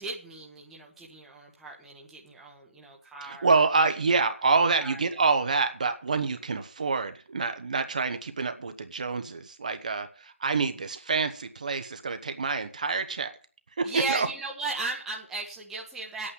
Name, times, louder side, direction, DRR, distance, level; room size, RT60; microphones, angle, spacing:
voice 1, 0.0-3.5 4.8-5.0 13.8-16.3, right 3 dB, 5° right, -2 dB, 1.0 m, -36 dB
voice 2, 3.2-13.3 13.8-14.3, right 4 dB, 35° right, 8 dB, 0.9 m, -27 dB
9.6 x 8.6 x 7.1 m, 0.39 s
figure-of-eight pair, 160°, 7 cm